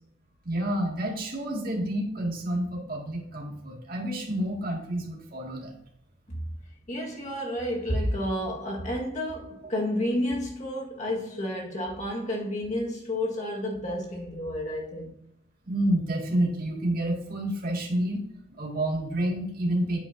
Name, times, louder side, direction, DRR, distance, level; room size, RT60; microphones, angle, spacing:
voice 1, 0.4-5.7 15.7-18.2 18.6-20.0, right 1 dB, 45° right, 2.3 m, -29 dB
voice 2, 6.9-15.1, left 1 dB, 35° left, 1.8 m, -30 dB
9.1 x 8.7 x 2.8 m
head